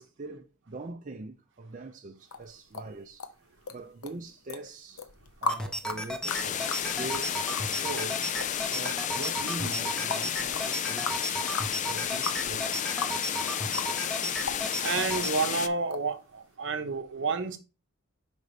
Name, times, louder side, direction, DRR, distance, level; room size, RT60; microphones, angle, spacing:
voice 1, 0.0-3.3 3.7-5.0 5.4-8.2 8.7-11.1 11.9-12.8 13.2-13.5 14.1-14.9, right 2 dB, 35° right, 0.5 m, -42 dB
sound 1, 2.3-3.8 4.0-4.6 5.0-13.2 13.5-14.2 14.4-15.3 15.9-16.1 16.4-16.5, left 4 dB, 80° left, 0.8 m, -36 dB
sound 2, 5.5-15.3, equal, 5° left, 0.6 m, -35 dB
sound 3, 6.3-15.7, left 9 dB, 35° left, 0.3 m, -32 dB
voice 2, 14.8-16.2 16.6-17.6, right 4 dB, 60° right, 0.9 m, -29 dB
5.3 x 4.0 x 4.8 m
head